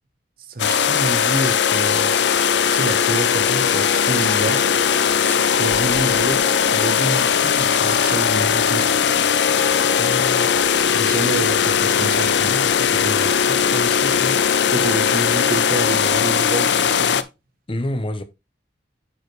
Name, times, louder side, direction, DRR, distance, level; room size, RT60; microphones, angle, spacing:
voice 1, 0.5-2.1 2.7-4.7 5.5-6.5 6.7-8.9 10.9-12.6 12.9-13.2 14.7-17.2, right 2 dB, 55° right, 1.1 m, -27 dB
sound 1, 0.6-17.2, left 7 dB, 65° left, 0.5 m, -19 dB
sound 2, 1.4-6.4, left 1 dB, 10° left, 1.6 m, -42 dB
voice 2, 10.0-10.5 12.5-14.4 17.7-18.2, left 1 dB, 30° left, 0.7 m, -30 dB
9.8 x 4.9 x 3.1 m
head